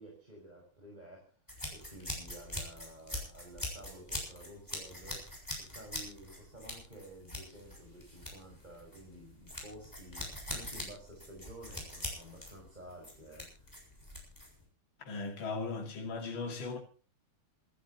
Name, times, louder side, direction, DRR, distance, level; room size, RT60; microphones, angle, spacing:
voice 1, 0.0-1.4 1.7-13.5, right 1 dB, 20° right, 6.0 m, -52 dB
sound 1, 1.5-14.6, left 1 dB, 10° left, 7.0 m, -43 dB
voice 2, 15.0-16.8, left 4 dB, 65° left, 3.1 m, -38 dB
27.0 x 13.0 x 3.0 m
omnidirectional pair, 2.4 m